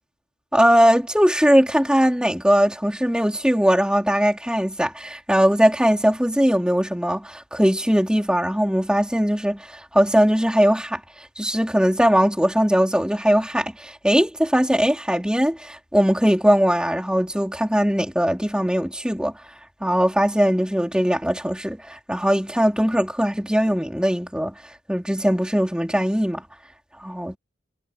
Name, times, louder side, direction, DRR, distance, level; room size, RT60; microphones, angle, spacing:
voice 1, 0.5-11.0 11.4-19.3 19.8-24.5 24.9-26.4 27.0-27.4, equal, 5° right, 3.7 m, -20 dB
head